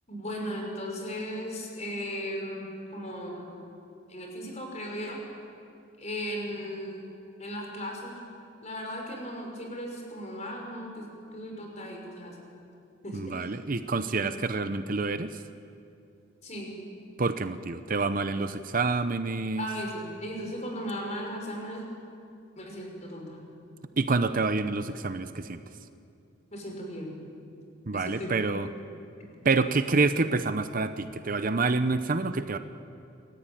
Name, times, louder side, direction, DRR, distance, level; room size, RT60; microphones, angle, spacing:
voice 1, 0.1-3.6 4.1-5.2 6.0-7.0 7.4-8.2 8.6-12.4 13.0-13.5 16.4-16.7 19.6-21.9 22.6-23.4 26.5-27.1 27.9-28.3 28.6-28.7 29.2-29.3, equal, 35° left, 1 dB, 5.3 m, -37 dB
voice 2, 13.1-15.4 17.2-19.7 24.0-25.6 27.9-28.7 29.4-32.6, right 3 dB, 45° right, 10 dB, 0.7 m, -27 dB
28.5 x 14.5 x 9.1 m, 2.5 s
head